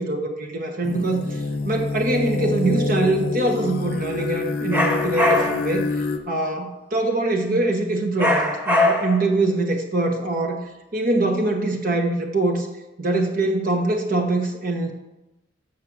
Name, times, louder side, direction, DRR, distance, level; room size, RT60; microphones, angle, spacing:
voice 1, 0.0-10.7 10.9-12.7 13.0-14.9, right 2 dB, 50° right, 3 dB, 1.0 m, -23 dB
sound 1, 0.8-6.2, left 3 dB, 55° left, 0.6 m, -26 dB
sound 2, 4.7-5.7 8.2-9.3, left 1 dB, 10° right, 1.2 m, -21 dB
6.4 x 6.0 x 7.2 m, 0.97 s
head